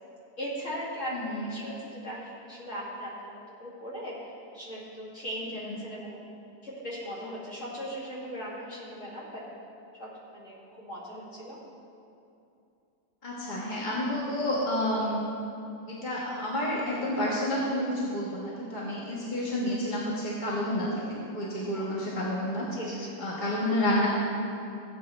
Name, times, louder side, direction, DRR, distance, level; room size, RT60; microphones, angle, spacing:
voice 1, 0.4-6.3 6.6-9.4 10.0-11.6 18.7-18.9 21.7-21.9 22.7-23.2, equal, 45° left, -7 dB, 2.8 m, -39 dB
voice 2, 1.1-1.5 5.5-5.7 13.2-15.2 15.9-22.7 23.2-24.1, left 1 dB, 30° left, -6 dB, 1.5 m, -30 dB
16.5 x 8.3 x 3.3 m, 2.7 s
omnidirectional pair, 1.8 m